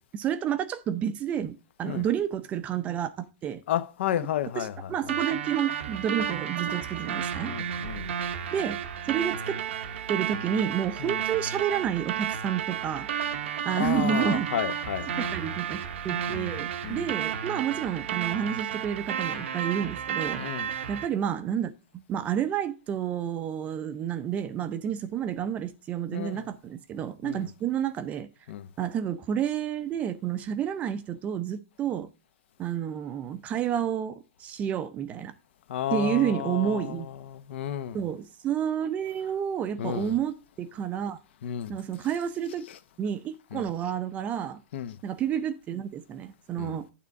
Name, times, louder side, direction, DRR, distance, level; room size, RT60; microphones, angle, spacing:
voice 1, 0.1-3.6 4.6-7.5 8.5-8.8 9.1-9.6 10.1-13.1 13.6-14.5 15.2-20.4 20.9-28.3 28.8-32.1 32.6-35.3 35.9-37.1 37.9-41.2 41.7-42.6 43.0-44.6 45.0-46.9, right 9 dB, 20° right, 0.5 m, -30 dB
voice 2, 3.7-4.7 7.5-8.1 11.0-11.2 13.7-15.2 16.3-16.5 16.8-17.0 20.4-20.7 26.1-26.4 27.2-27.5 28.5-28.7 35.7-38.0 39.8-40.1 41.4-41.7 43.5-43.6 44.7-45.0 46.6-46.8, left 10 dB, 65° left, 0.7 m, -32 dB
sound 1, 5.1-21.1, right 8 dB, 70° right, 0.8 m, -32 dB
8.8 x 3.6 x 6.8 m
hypercardioid pair, 155°, 7 cm